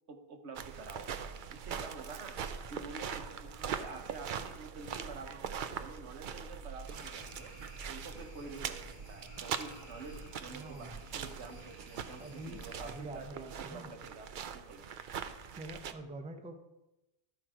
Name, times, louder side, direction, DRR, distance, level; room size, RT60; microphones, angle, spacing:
voice 1, 0.1-1.1 1.5-2.4 2.7-7.5 7.9-14.9, right 4 dB, 85° right, 4 dB, 1.4 m, -48 dB
sound 1, 0.6-15.9, right 7 dB, 55° right, 0.6 m, -42 dB
sound 2, 6.8-13.0, left 1 dB, 25° right, 2.6 m, -54 dB
voice 2, 10.5-11.0 12.2-13.9 15.5-16.5, right 2 dB, 10° right, 6 dB, 0.5 m, -46 dB
12.5 x 4.5 x 4.9 m, 0.97 s
omnidirectional pair, 1.1 m